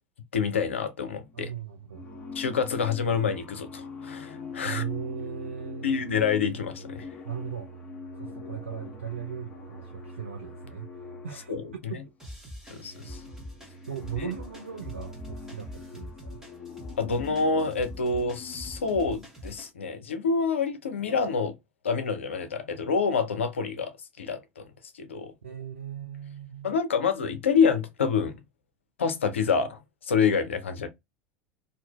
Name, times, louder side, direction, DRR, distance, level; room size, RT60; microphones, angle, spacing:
voice 1, 0.3-1.5 2.3-4.8 5.8-7.1 11.5-11.9 12.7-13.2 14.2-14.3 17.0-21.5 21.8-24.7 25.0-25.3 26.6-28.4 29.0-30.9, left 5 dB, 80° left, 0.5 m, -27 dB
sound 1, 1.2-1.5 1.9-11.9 12.5-19.1, left 3 dB, 25° left, 1.0 m, -43 dB
voice 2, 1.3-2.0 4.6-6.0 7.2-7.7 8.1-11.5 11.9-12.1 13.9-16.4 25.4-26.8, right 8 dB, 85° right, 0.4 m, -38 dB
sound 2, 12.2-19.7, equal, 10° right, 1.2 m, -44 dB
2.5 x 2.4 x 2.2 m
figure-of-eight pair, 75°, 7 cm